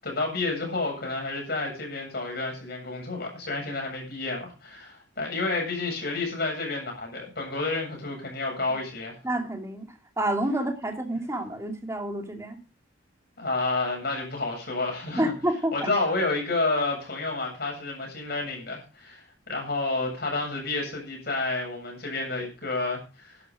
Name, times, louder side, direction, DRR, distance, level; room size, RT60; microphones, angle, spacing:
voice 1, 0.0-9.2 13.4-15.3 15.7-23.3, left 3 dB, 50° left, 1 dB, 7.8 m, -30 dB
voice 2, 9.2-9.9 10.2-12.6 15.1-15.9, right 1 dB, 15° right, 3 dB, 2.6 m, -28 dB
13.0 x 11.5 x 5.0 m, 0.33 s
head